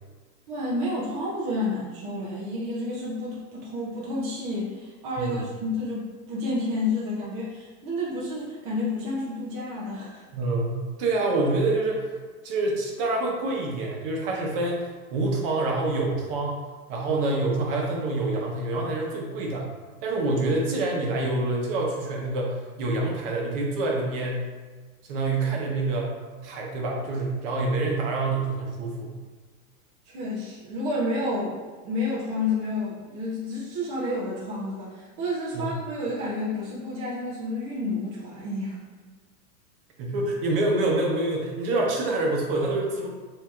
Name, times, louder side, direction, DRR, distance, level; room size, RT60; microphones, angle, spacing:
voice 1, 0.5-10.2 30.1-38.8, left 2 dB, 20° right, -6 dB, 0.5 m, -30 dB
voice 2, 10.3-12.1 12.4-16.6 16.9-19.7 20.0-24.4 25.1-26.1 26.4-29.1 35.5-35.7 40.0-43.1, right 2 dB, 40° right, -1 dB, 0.9 m, -26 dB
7.2 x 2.8 x 2.4 m, 1.4 s
supercardioid pair, 160°, 44 cm